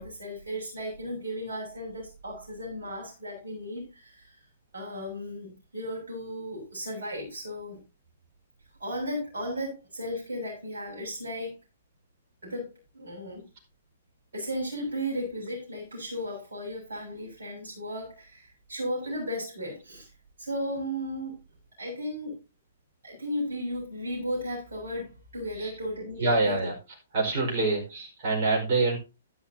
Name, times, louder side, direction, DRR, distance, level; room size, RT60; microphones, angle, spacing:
voice 1, 0.0-4.4 4.7-7.8 8.8-11.6 12.4-13.4 14.3-20.1 20.4-21.4 21.8-22.3 23.0-26.5, equal, 60° right, -4 dB, 7.0 m, -35 dB
voice 2, 26.2-26.7 27.1-29.0, right 3 dB, 40° right, -1 dB, 4.9 m, -26 dB
12.5 x 10.5 x 2.9 m, 0.28 s
figure-of-eight pair, 115°, 0 cm